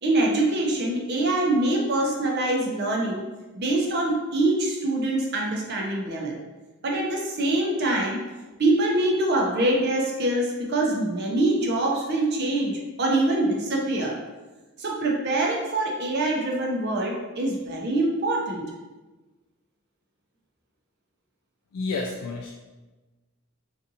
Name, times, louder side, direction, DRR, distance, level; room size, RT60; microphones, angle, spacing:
voice 1, 0.0-3.2 3.5-6.3 6.8-8.2 8.6-14.2 14.8-18.6, right 2 dB, 45° right, -1 dB, 0.6 m, -24 dB
voice 2, 21.7-22.5, left 3 dB, 80° left, 1 dB, 0.3 m, -30 dB
3.7 x 2.5 x 2.7 m, 1.2 s
head